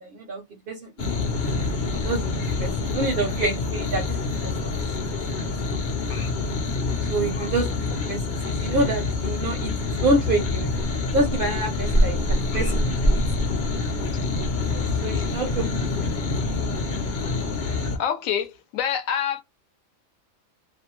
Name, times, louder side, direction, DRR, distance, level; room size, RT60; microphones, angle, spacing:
voice 1, 0.0-0.4 0.7-0.8 2.0-2.2 2.6-4.8 5.4-5.5 7.1-7.7 8.1-9.7 10.0-10.7 11.1-13.2 14.7-16.1, right 2 dB, 60° right, 0.6 m, -27 dB
sound 1, 1.0-18.0, left 2 dB, 50° left, 0.6 m, -26 dB
voice 2, 18.0-19.4, left 8 dB, 75° left, 0.9 m, -26 dB
2.5 x 2.1 x 2.9 m
omnidirectional pair, 1.5 m